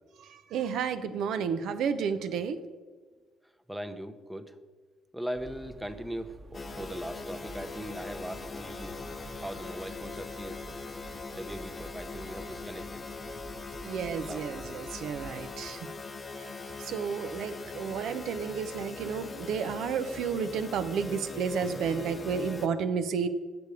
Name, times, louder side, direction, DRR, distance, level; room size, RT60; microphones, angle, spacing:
voice 1, 0.2-2.6 13.8-15.9 16.8-23.3, right 6 dB, 80° right, 10 dB, 0.5 m, -31 dB
voice 2, 3.4-4.6 5.1-9.0 9.3-10.8 11.3-13.0 14.1-14.4, equal, 5° right, 9 dB, 0.7 m, -40 dB
sound 1, 5.4-15.8, right 1 dB, 45° right, 1.0 m, -49 dB
sound 2, 6.5-22.7, left 3 dB, 35° left, 0.7 m, -41 dB
8.0 x 6.8 x 4.9 m, 1.4 s
cardioid pair, 90°, 0 cm